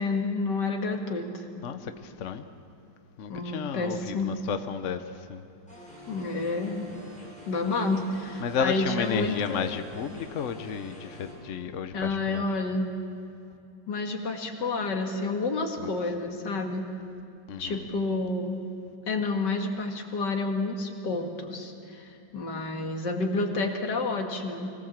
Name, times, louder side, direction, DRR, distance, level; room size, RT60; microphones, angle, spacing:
voice 1, 0.0-1.5 3.3-4.3 6.1-6.9 7.5-9.7 11.9-12.9 13.9-16.8 17.6-18.6 19.1-24.7, left 3 dB, 75° left, 3 dB, 2.4 m, -29 dB
voice 2, 1.6-2.4 3.2-5.0 5.3-5.5 8.4-12.4 15.8-15.9 17.5-17.9, left 7 dB, 55° left, 9 dB, 1.0 m, -32 dB
sound 1, 5.7-11.3, equal, 5° left, 6.2 m, -47 dB
24.0 x 17.5 x 7.4 m, 2.6 s
omnidirectional pair, 1.9 m